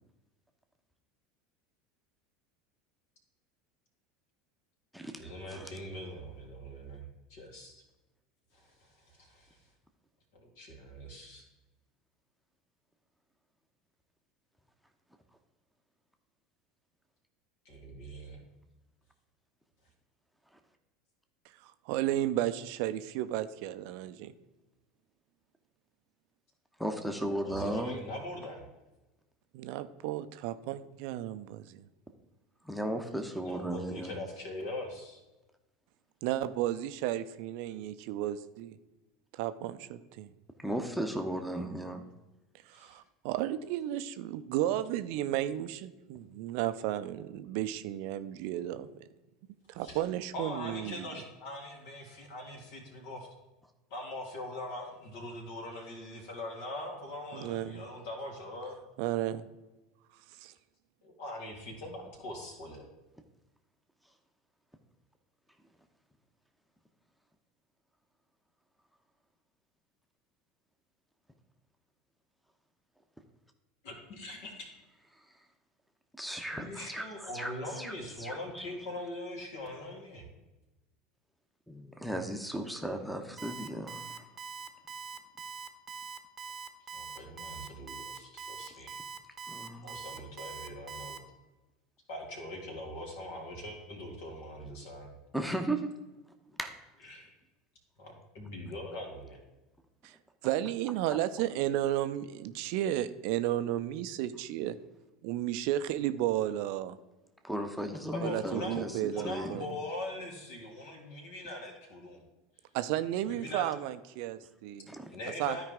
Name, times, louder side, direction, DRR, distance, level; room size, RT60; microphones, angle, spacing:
voice 1, 5.2-7.0 7.3-7.7 8.5-9.6 10.3-11.4 17.6-18.4 27.4-28.6 33.4-35.2 42.7-43.0 49.7-50.0 50.3-53.3 53.9-58.8 61.0-62.8 73.8-74.7 76.5-80.2 86.9-88.9 89.8-91.2 92.1-95.1 97.0-97.4 98.0-99.4 108.1-112.2 113.2-113.7 115.1-115.6, left 1 dB, 60° left, 1 dB, 2.4 m, -42 dB
voice 2, 21.6-24.3 29.5-31.8 36.2-38.8 39.3-40.3 42.7-48.9 49.7-51.1 57.3-57.8 59.0-59.4 60.4-60.5 100.0-100.2 100.4-104.8 105.2-107.0 108.2-109.7 112.7-114.9 115.4-115.6, right 13 dB, 60° right, 12 dB, 0.5 m, -33 dB
voice 3, 26.8-28.0 32.6-34.1 40.6-42.0 76.2-77.9 78.2-78.7 81.7-84.2 89.5-90.0 95.3-95.9 96.6-96.7 107.4-109.6 114.9-115.1, right 1 dB, ahead, 3 dB, 0.9 m, -36 dB
Alarm, 83.4-91.2, right 5 dB, 30° right, 0.8 m, -42 dB
13.0 x 4.8 x 3.6 m, 1.1 s
figure-of-eight pair, 75°, 0 cm